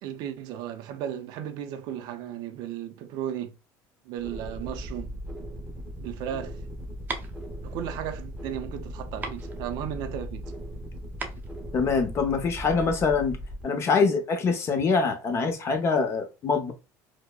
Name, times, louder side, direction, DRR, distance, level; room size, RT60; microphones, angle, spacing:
voice 1, 0.0-3.5 4.0-5.1 6.0-6.6 7.6-10.5, right 10 dB, 70° right, 0.5 m, -35 dB
sound 1, 4.2-13.6, equal, 5° right, 1.0 m, -38 dB
sound 2, 5.9-12.5, right 4 dB, 25° right, 0.6 m, -40 dB
voice 2, 11.7-13.4 13.6-16.7, left 4 dB, 35° left, 0.8 m, -24 dB
4.7 x 2.1 x 2.2 m
cardioid pair, 135°, 8 cm